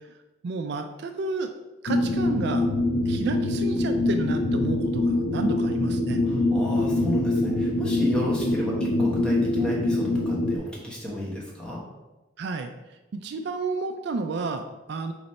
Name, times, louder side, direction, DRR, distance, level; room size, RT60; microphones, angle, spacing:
voice 1, 0.4-1.5 1.8-2.7 3.1-6.2 12.4-12.7 13.1-15.1, right 3 dB, 60° right, 7 dB, 0.3 m, -31 dB
sound 1, 1.9-10.6, left 2 dB, 80° left, 0.5 m, -24 dB
voice 2, 6.2-11.8, equal, 5° left, -4 dB, 1.0 m, -31 dB
4.0 x 3.2 x 4.2 m, 1.1 s
head